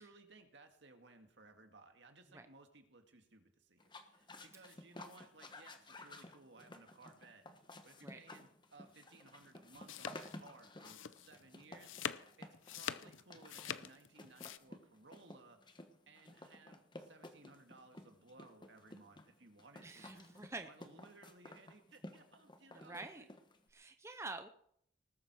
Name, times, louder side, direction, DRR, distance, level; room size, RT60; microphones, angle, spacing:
voice 1, 0.0-7.5 7.8-11.9 12.4-15.6 16.1-23.3, right 3 dB, 65° right, 5 dB, 2.1 m, -61 dB
sound 1, 3.8-23.7, left 2 dB, 25° left, 1.2 m, -54 dB
sound 2, 9.4-14.6, left 8 dB, 85° left, 0.7 m, -45 dB
voice 2, 19.8-20.7 22.7-23.2 23.7-24.5, right 3 dB, 15° right, 7 dB, 0.7 m, -47 dB
19.5 x 7.8 x 6.2 m, 0.68 s
head